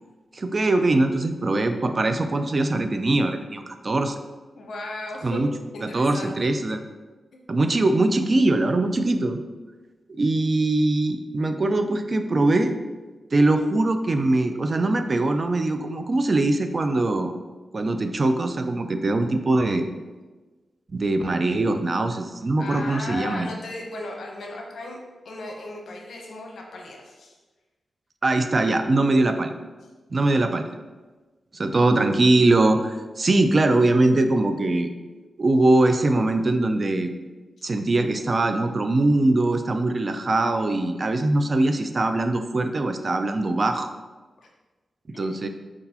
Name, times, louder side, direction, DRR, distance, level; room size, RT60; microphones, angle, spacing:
voice 1, 0.3-4.2 5.2-5.5 5.8-6.8 7.5-9.4 10.1-12.8 13.3-17.3 17.7-19.9 20.9-23.5 28.2-29.5 30.1-30.7 31.5-34.9 35.4-37.1 37.6-43.9 45.2-45.5, right 2 dB, 40° right, 7 dB, 0.3 m, -22 dB
voice 2, 4.6-5.4 5.7-6.5 22.6-25.0 25.2-27.3 45.1-45.3, left 2 dB, 80° left, 0 dB, 0.8 m, -36 dB
4.6 x 3.9 x 2.8 m, 1.3 s
wide cardioid pair, 90°, 0 cm